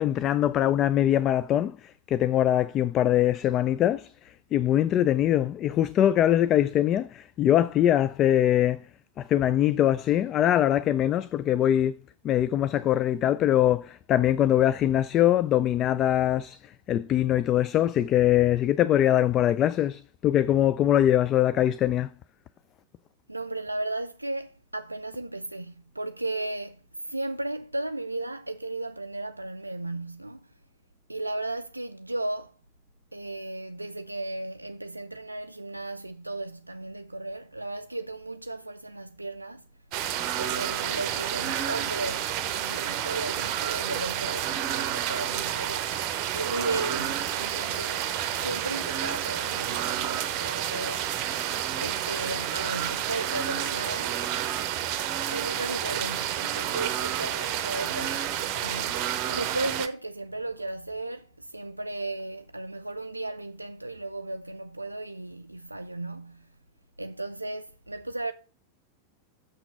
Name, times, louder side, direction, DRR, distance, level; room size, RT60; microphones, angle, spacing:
voice 1, 0.0-8.9 9.2-12.0 12.2-22.1, left 11 dB, 30° left, 0.3 m, -23 dB
voice 2, 23.3-30.5 31.1-32.5 33.1-39.7 40.4-46.0 46.3-51.1 51.8-54.5 55.3-66.5 67.0-68.3, right 2 dB, 85° right, 0.3 m, -35 dB
sound 1, 39.9-59.9, right 11 dB, 40° right, 0.8 m, -30 dB
6.7 x 5.9 x 5.7 m
figure-of-eight pair, 90°, 0 cm